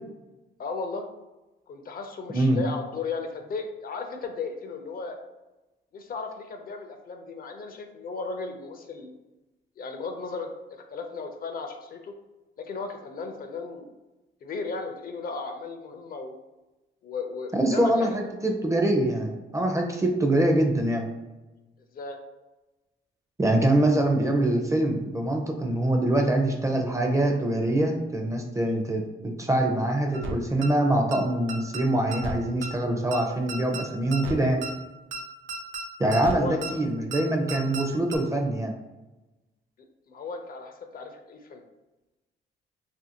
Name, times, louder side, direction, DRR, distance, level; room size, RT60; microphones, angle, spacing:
voice 1, 0.6-1.1 1.7-5.2 5.9-9.1 9.8-12.1 12.6-13.9 14.4-16.3 17.0-18.2 21.9-22.2 36.3-36.6 40.1-41.6, left 4 dB, 45° left, 5 dB, 0.4 m, -35 dB
voice 2, 17.5-21.1 23.4-34.6 36.0-38.7, right 1 dB, 15° right, 2 dB, 0.4 m, -24 dB
sound 1, 30.1-30.3 30.6-30.7 31.1-31.2 31.5-31.8 32.1-32.3 32.6-32.7 33.1-33.2 33.5-33.8 34.1-34.3 34.6-34.7 35.1-35.2 35.5-35.8 36.1-36.3 36.6-36.7 37.1-37.2 37.5-37.8 38.1-38.2, right 3 dB, 80° right, 0.5 m, -33 dB
2.7 x 2.5 x 2.7 m, 1.1 s
cardioid pair, 90°, 20 cm